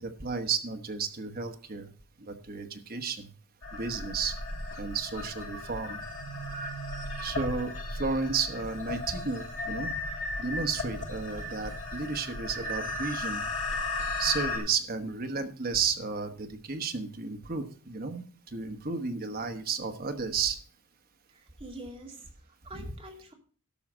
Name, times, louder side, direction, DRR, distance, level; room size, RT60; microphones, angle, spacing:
voice 1, 0.0-1.9 2.2-3.3 3.7-4.3 4.8-6.0 7.2-9.9 10.4-13.4 14.2-20.6 22.7-22.9, right 5 dB, 45° right, 6 dB, 1.2 m, -33 dB
sound 1, 3.6-14.6, left 2 dB, 60° left, 4.7 m, -35 dB
voice 2, 21.3-23.3, right 1 dB, 25° right, 1 dB, 2.4 m, -46 dB
12.5 x 5.8 x 6.1 m, 0.43 s
head